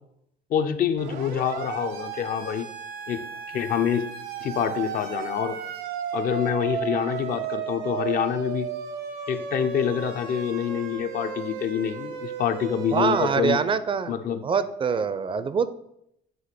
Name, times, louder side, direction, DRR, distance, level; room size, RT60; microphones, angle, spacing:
voice 1, 0.5-2.7 3.1-3.2 3.5-4.1 4.4-5.6 6.1-8.7 9.3-13.6 14.1-14.5, left 8 dB, 60° left, 8 dB, 0.6 m, -26 dB
Siren, 1.0-13.4, right 7 dB, 85° right, 0.9 m, -34 dB
voice 2, 12.9-14.1 14.4-15.7, right 5 dB, 30° right, 13 dB, 0.4 m, -24 dB
7.8 x 2.9 x 5.9 m, 0.77 s
cardioid pair, 110°, 17 cm